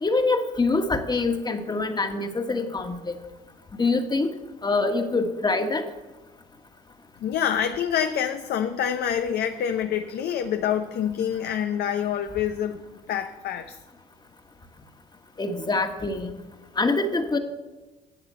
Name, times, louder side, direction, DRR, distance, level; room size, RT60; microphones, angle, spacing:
voice 1, 0.0-3.2 3.8-4.3 4.6-5.9 15.4-16.3 16.8-17.4, left 3 dB, 25° left, 7 dB, 1.6 m, -25 dB
voice 2, 7.2-12.8 13.1-13.8, left 9 dB, 65° left, 8 dB, 0.7 m, -26 dB
12.0 x 8.0 x 6.9 m, 1.2 s
supercardioid pair, 65°, 18 cm